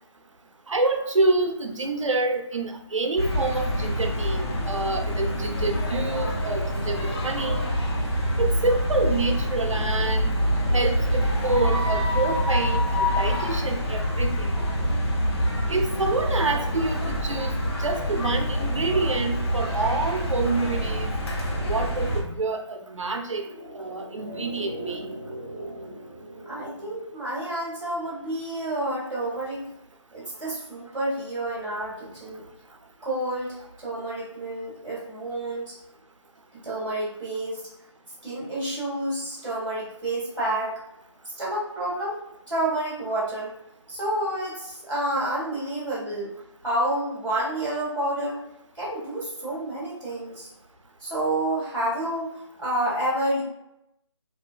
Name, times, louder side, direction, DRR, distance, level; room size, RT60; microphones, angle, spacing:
voice 1, 0.7-7.6 8.4-10.4 10.7-14.6 15.7-21.1 21.7-23.5 23.7-25.1, right 3 dB, 85° right, 5 dB, 0.5 m, -27 dB
sound 1, 3.2-22.2, equal, 55° left, 0.8 m, -26 dB
sound 2, 23.2-27.8 28.0-28.1, right 1 dB, 30° right, 0.7 m, -39 dB
voice 2, 26.4-29.6 30.1-32.4 33.0-35.7 36.6-37.6 38.2-40.8 41.4-42.2 42.5-43.5 43.9-46.3 46.6-48.4 48.7-50.5 51.0-52.3 52.6-53.4, right 1 dB, ahead, -30 dB, 0.3 m, -29 dB
2.5 x 2.1 x 2.2 m, 0.84 s
figure-of-eight pair, 160°, 16 cm